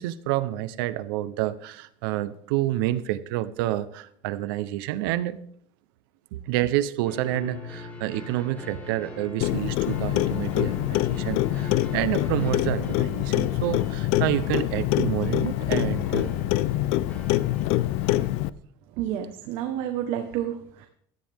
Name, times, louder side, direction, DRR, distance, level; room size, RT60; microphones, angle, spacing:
voice 1, 0.0-5.4 6.3-16.4, right 14 dB, 85° right, 14 dB, 1.0 m, -28 dB
sound 1, 7.0-18.2, left 3 dB, 15° left, 3.6 m, -41 dB
Clock, 9.4-18.5, left 15 dB, 65° left, 0.6 m, -25 dB
voice 2, 19.0-20.9, right 11 dB, 60° right, 5 dB, 1.4 m, -30 dB
16.5 x 13.5 x 3.7 m, 0.64 s
cardioid pair, 145°, 11 cm